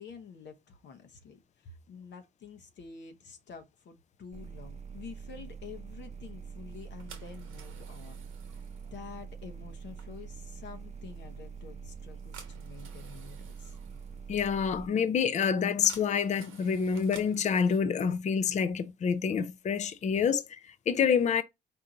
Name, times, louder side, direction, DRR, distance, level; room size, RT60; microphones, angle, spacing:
voice 1, 0.0-8.2 8.9-13.8, left 6 dB, 65° left, 0.8 m, -48 dB
sound 1, 4.3-14.9, right 6 dB, 35° right, 0.7 m, -44 dB
sound 2, 6.7-17.8, right 7 dB, 85° right, 1.0 m, -54 dB
voice 2, 14.3-21.4, left 6 dB, 35° left, 0.4 m, -27 dB
4.5 x 2.5 x 3.7 m
cardioid pair, 90°, 20 cm